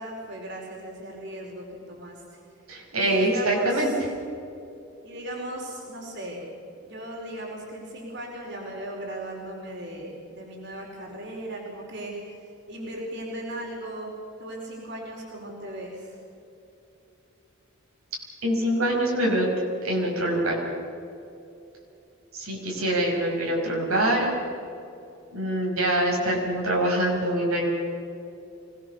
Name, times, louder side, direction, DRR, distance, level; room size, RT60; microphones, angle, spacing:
voice 1, 0.0-2.4 2.9-3.9 5.0-6.4 6.8-12.4 12.7-14.1 14.4-16.2, right 1 dB, 55° right, -2 dB, 4.8 m, -37 dB
voice 2, 2.7-3.9 18.4-19.5 19.8-20.6 22.3-24.3 25.3-27.7, right 1 dB, 85° right, -1 dB, 5.9 m, -24 dB
25.5 x 19.0 x 7.0 m, 2.8 s
head